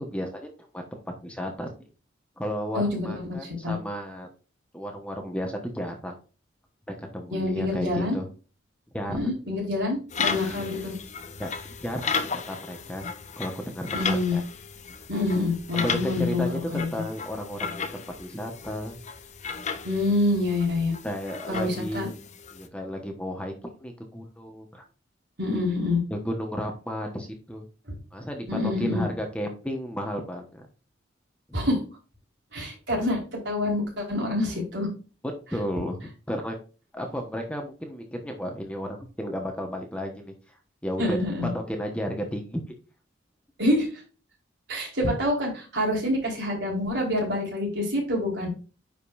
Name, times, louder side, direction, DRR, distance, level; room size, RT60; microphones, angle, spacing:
voice 1, 0.0-1.7 2.4-4.3 4.7-6.2 6.9-8.3 8.9-9.2 10.5-10.8 11.4-11.5 11.8-12.1 12.5-13.1 13.4-14.4 15.7-19.0 21.0-22.1 22.5-24.8 26.1-27.6 28.1-30.7 35.2-36.6 36.9-40.3 40.8-41.2 41.5-42.6, equal, 5° left, 3 dB, 1.2 m, -33 dB
voice 2, 2.7-3.7 7.3-8.2 9.1-10.9 13.9-14.4 15.1-16.9 19.8-20.9 21.5-22.1 25.4-26.0 28.5-29.0 31.5-31.8 32.5-34.9 41.0-41.5 43.6-43.9 44.7-48.5, left 2 dB, 60° right, -2 dB, 4.3 m, -26 dB
sound 1, 10.1-22.7, left 5 dB, 40° left, 0.8 m, -35 dB
10.0 x 5.3 x 2.6 m, 0.35 s
head